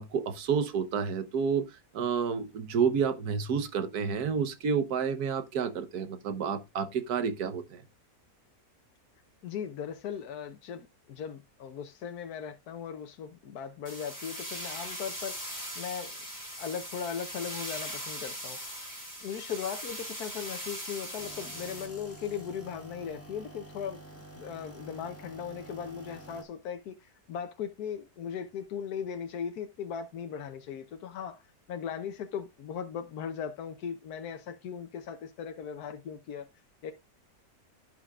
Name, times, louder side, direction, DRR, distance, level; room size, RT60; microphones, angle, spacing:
voice 1, 0.0-1.7 1.9-7.8, right 6 dB, 90° right, 1.5 m, -30 dB
voice 2, 9.4-16.2 16.6-18.8 19.2-24.0 24.3-36.5 36.8-36.9, left 7 dB, 80° left, 1.4 m, -38 dB
sound 1, 13.9-21.9, equal, 10° right, 4.4 m, -40 dB
sound 2, 21.2-26.4, right 2 dB, 10° left, 1.5 m, -49 dB
16.0 x 5.6 x 2.4 m
omnidirectional pair, 1.6 m